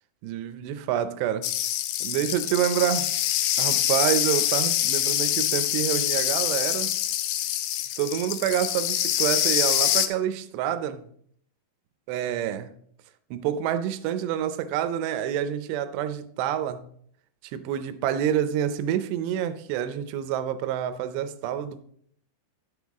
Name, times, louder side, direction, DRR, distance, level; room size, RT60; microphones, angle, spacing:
voice 1, 0.2-1.4 2.0-3.1 3.6-6.9 8.0-11.0 12.1-12.7 13.3-16.8 17.5-21.8, right 10 dB, 85° right, 11 dB, 2.8 m, -27 dB
sound 1, 1.4-10.1, left 12 dB, 80° left, 2.5 m, -25 dB
10.5 x 8.1 x 3.5 m, 0.65 s
omnidirectional pair, 4.8 m